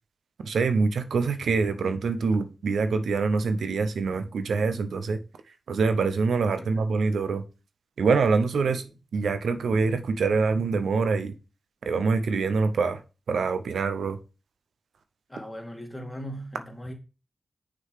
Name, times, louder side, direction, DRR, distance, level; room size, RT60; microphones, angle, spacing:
voice 1, 0.4-5.2 5.7-7.4 8.0-8.8 9.1-11.3 11.8-13.0 13.3-14.2, right 4 dB, 85° right, 0.6 m, -25 dB
voice 2, 8.5-9.0 15.3-16.9, equal, 15° left, 2.3 m, -39 dB
6.4 x 3.9 x 4.6 m
cardioid pair, 45°, 0 cm